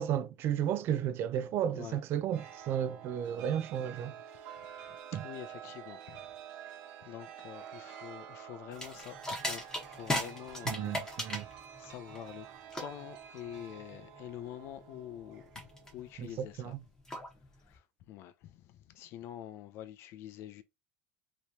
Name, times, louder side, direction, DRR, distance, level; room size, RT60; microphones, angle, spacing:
voice 1, 0.0-4.1 5.1-5.2 10.7-11.5 16.2-16.8, right 10 dB, 45° right, 0.5 m, -33 dB
Chime, 2.3-16.5, right 9 dB, 60° right, 1.2 m, -49 dB
voice 2, 5.1-6.2 6.7-6.8 7.1-11.5 11.8-12.5 12.8-15.6 15.9-16.7 17.7-20.6, left 11 dB, 50° left, 0.6 m, -46 dB
sound 1, 8.7-17.8, left 1 dB, 10° left, 1.1 m, -39 dB
3.2 x 3.0 x 2.8 m
supercardioid pair, 135°, 5 cm